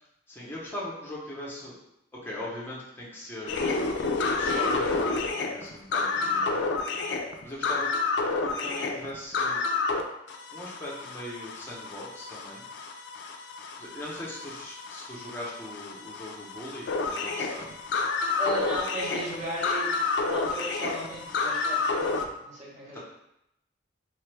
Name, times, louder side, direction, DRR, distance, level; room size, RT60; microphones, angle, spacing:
voice 1, 0.3-1.8 2.2-4.0 4.4-6.7 7.4-7.9 8.4-9.6 10.5-12.6 13.8-17.7 22.9-23.0, left 1 dB, 10° left, -6 dB, 0.7 m, -40 dB
sound 1, 3.5-10.0 10.3-22.3, left 4 dB, 65° left, 0.3 m, -30 dB
voice 2, 18.4-19.9 20.2-23.0, equal, 40° right, -6 dB, 1.0 m, -35 dB
2.9 x 2.2 x 3.2 m, 0.82 s
head